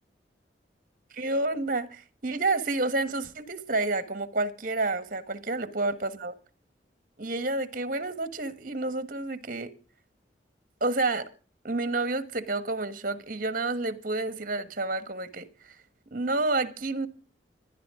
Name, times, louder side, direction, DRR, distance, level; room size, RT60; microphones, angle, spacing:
voice 1, 1.1-6.3 7.2-9.7 10.8-11.3 11.6-15.8 16.1-17.1, right 2 dB, 50° right, 1.5 m, -29 dB
25.0 x 11.0 x 3.7 m
head